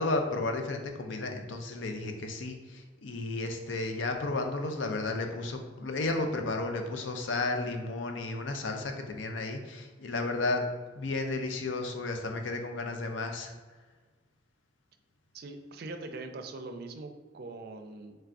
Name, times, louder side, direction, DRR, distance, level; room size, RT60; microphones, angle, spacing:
voice 1, 0.0-10.6 10.9-13.5, left 2 dB, 80° left, 4 dB, 0.5 m, -33 dB
voice 2, 15.3-18.2, right 2 dB, 55° right, 6 dB, 0.4 m, -42 dB
4.6 x 3.2 x 2.5 m, 1.3 s
head